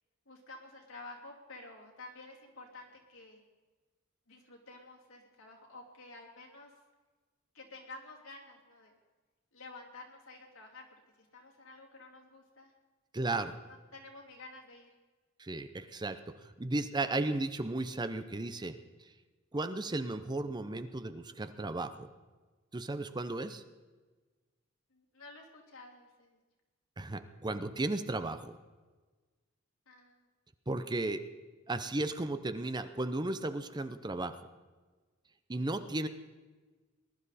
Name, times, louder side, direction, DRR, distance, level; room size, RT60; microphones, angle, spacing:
voice 1, 0.2-3.4 4.3-6.7 7.5-8.9 9.5-10.9 11.1-12.7 13.7-14.9 24.9-26.4 29.9-30.3, left 2 dB, 85° left, -1 dB, 3.1 m, -51 dB
voice 2, 13.1-13.6 15.4-18.7 19.0-19.1 19.5-22.1 22.7-23.6 27.0-28.5 30.7-31.2 31.7-34.4 35.5-36.1, right 2 dB, 20° right, 11 dB, 0.6 m, -35 dB
20.0 x 11.5 x 4.2 m, 1.3 s
head